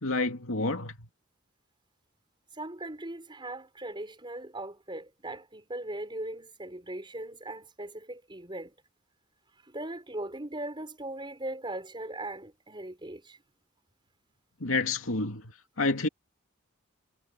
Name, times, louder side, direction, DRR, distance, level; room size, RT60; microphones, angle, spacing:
voice 1, 0.0-1.1 14.6-15.4 15.8-16.1, left 3 dB, 70° left, 2.6 m, -29 dB
voice 2, 2.6-8.7 9.7-13.2, right 1 dB, 20° right, 4.7 m, -39 dB
head